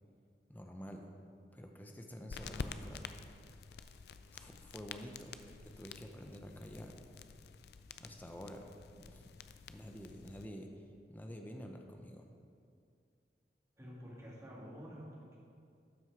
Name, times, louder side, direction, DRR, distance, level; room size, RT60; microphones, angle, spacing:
voice 1, 0.5-1.0 1.5-3.1 4.3-5.4 5.6-7.0 8.0-8.7 9.0-9.2 9.7-12.3, equal, 10° left, 3 dB, 0.6 m, -49 dB
sound 1, 2.3-10.4, left 5 dB, 60° left, 0.4 m, -49 dB
voice 2, 13.8-15.4, equal, 15° right, -6 dB, 2.0 m, -49 dB
12.5 x 6.1 x 4.6 m, 2.4 s
head